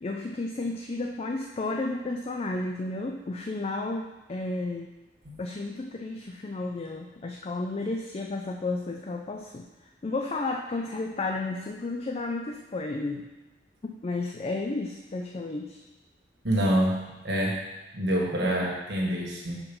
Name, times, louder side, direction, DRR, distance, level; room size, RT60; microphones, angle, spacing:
voice 1, 0.0-4.9 5.4-9.7 10.0-13.3 13.8-15.8 18.4-18.7, left 2 dB, 35° left, 2 dB, 0.4 m, -32 dB
voice 2, 16.4-17.6 17.9-19.6, equal, 65° right, -3 dB, 1.6 m, -26 dB
5.2 x 4.9 x 5.3 m, 1.1 s
head